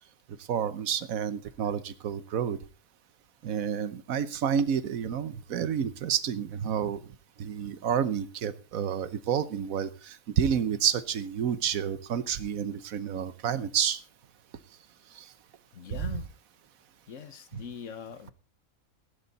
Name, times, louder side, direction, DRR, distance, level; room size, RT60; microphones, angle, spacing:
voice 1, 0.5-2.6 3.4-7.0 7.4-14.0 15.1-15.3 15.9-16.2 17.5-17.6, right 8 dB, 80° right, 1.3 m, -29 dB
voice 2, 15.7-16.3 17.1-18.3, left 7 dB, 65° left, 1.3 m, -42 dB
15.5 x 11.0 x 4.0 m
omnidirectional pair, 1.4 m